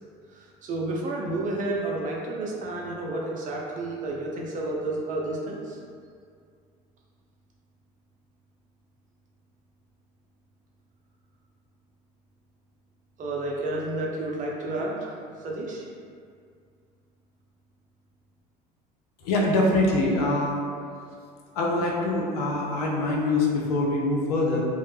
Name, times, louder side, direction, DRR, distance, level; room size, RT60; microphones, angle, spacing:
voice 1, 0.3-5.8 13.2-15.1 15.4-15.8, right 2 dB, 45° right, -2 dB, 0.6 m, -31 dB
voice 2, 19.2-20.6 21.5-24.6, left 2 dB, 90° left, -2 dB, 0.5 m, -24 dB
2.1 x 2.0 x 3.1 m, 2.2 s
supercardioid pair, 80°, 19 cm